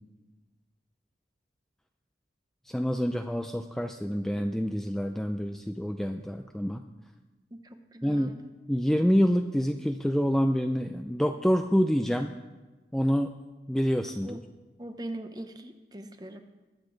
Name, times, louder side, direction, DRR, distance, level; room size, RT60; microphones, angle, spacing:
voice 1, 2.7-6.8 8.0-8.3 8.7-12.3 12.9-13.3 13.7-14.4, equal, 5° left, 5 dB, 0.4 m, -27 dB
voice 2, 7.5-8.4 14.2-14.4 14.8-16.4, right 1 dB, 20° right, 7 dB, 0.8 m, -41 dB
21.5 x 8.2 x 3.9 m, 1.2 s
head